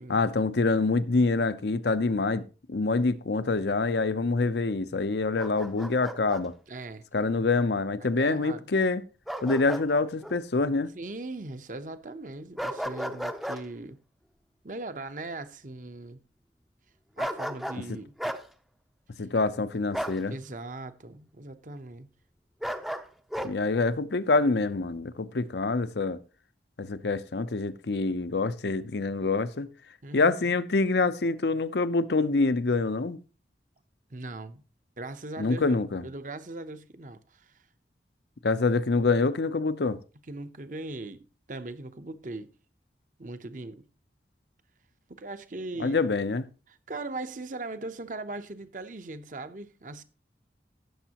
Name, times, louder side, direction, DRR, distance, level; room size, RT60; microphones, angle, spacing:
voice 1, 0.1-2.4 2.7-6.5 7.1-9.0 9.4-10.9 17.9-18.0 19.2-20.3 23.4-26.2 26.8-29.7 30.1-33.2 35.4-36.0 38.4-40.0 45.8-46.5, left 3 dB, 70° left, 0.7 m, -26 dB
Bark, 5.4-6.4 9.3-9.9 10.2-10.4 12.6-13.6 17.2-17.8 18.2-18.4 19.9-20.2 22.6-23.5, equal, ahead, 0.6 m, -34 dB
voice 2, 6.7-7.0 8.0-8.6 10.9-14.0 14.6-16.2 17.2-18.1 20.3-22.1 30.0-30.5 34.1-34.6 35.0-35.8 36.0-37.5 40.3-42.5 43.2-43.8 45.1-46.0 46.7-50.0, right 2 dB, 45° right, 0.8 m, -39 dB
15.5 x 7.2 x 2.9 m
head